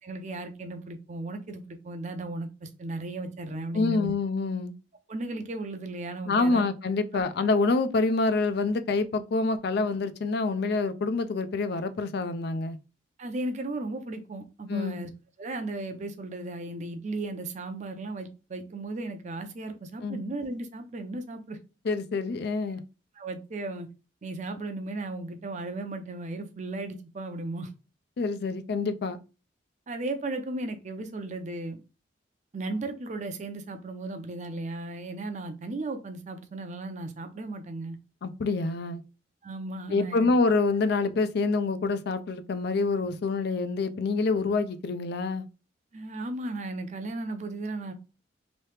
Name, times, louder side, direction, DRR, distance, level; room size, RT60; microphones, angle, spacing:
voice 1, 0.0-4.1 5.1-6.6 7.1-7.3 13.2-15.1 15.4-21.6 23.2-23.9 24.2-27.7 29.9-31.8 32.5-38.0 39.4-40.3 45.9-47.9, right 2 dB, 40° right, 0.5 m, -35 dB
voice 2, 3.7-4.7 6.3-12.8 14.7-15.0 20.0-20.2 21.8-22.8 28.2-29.2 38.2-39.0 39.9-45.5, left 3 dB, 60° left, 0.4 m, -26 dB
3.0 x 2.7 x 3.2 m
head